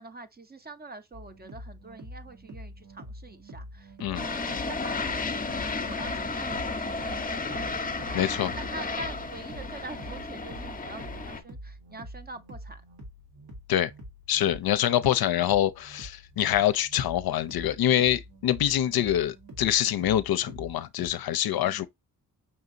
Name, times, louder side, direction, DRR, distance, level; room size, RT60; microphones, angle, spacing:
voice 1, 0.0-7.9 8.5-12.8 14.7-14.8 21.4-21.9, right 3 dB, 25° right, 0.6 m, -45 dB
sound 1, 1.1-21.1, equal, 85° right, 1.7 m, -45 dB
sound 2, 4.1-11.4, left 3 dB, 25° left, 0.6 m, -33 dB
voice 2, 8.1-8.5 13.7-13.9 14.3-21.9, left 11 dB, 70° left, 0.5 m, -25 dB
5.5 x 2.8 x 2.5 m
cardioid pair, 85°, 38 cm